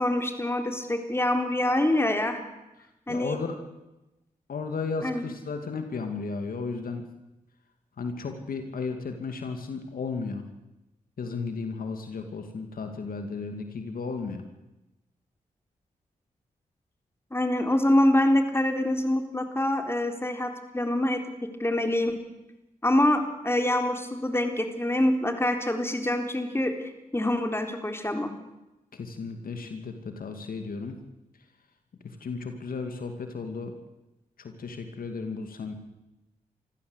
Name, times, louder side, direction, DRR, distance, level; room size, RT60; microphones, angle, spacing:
voice 1, 0.0-2.4 3.1-3.4 5.0-5.2 17.3-21.2 21.6-22.2 22.8-28.3, left 1 dB, 15° left, 5 dB, 3.9 m, -25 dB
voice 2, 2.8-3.6 4.5-7.1 8.0-10.5 11.2-14.4 28.9-31.0 32.0-33.7 34.4-35.7, left 4 dB, 75° left, 6 dB, 2.5 m, -34 dB
25.5 x 15.5 x 8.2 m, 0.98 s
cardioid pair, 45°, 15 cm